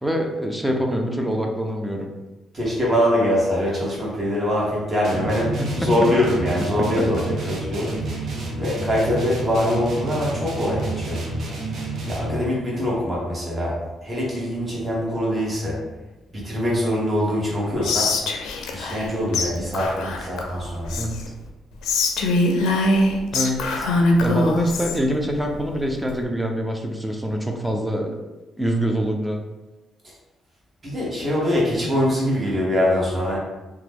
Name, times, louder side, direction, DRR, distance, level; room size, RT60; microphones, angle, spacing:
voice 1, 0.0-2.1 5.6-5.9 7.4-7.6 21.0-21.3 23.3-23.9 24.2-28.2 28.6-29.4, equal, 5° right, 2 dB, 0.5 m, -25 dB
voice 2, 2.5-8.1 8.6-11.3 12.1-15.8 16.3-18.2 18.7-21.0 30.8-33.4, left 1 dB, 30° right, -5 dB, 1.2 m, -23 dB
sound 1, 5.0-12.6, right 2 dB, 60° right, 0.6 m, -29 dB
Whispering, 17.8-19.1 19.3-19.5 19.7-21.3 21.8-25.0, left 2 dB, 85° left, 0.4 m, -22 dB
2.9 x 2.2 x 3.4 m, 1.1 s
cardioid pair, 90°, 0 cm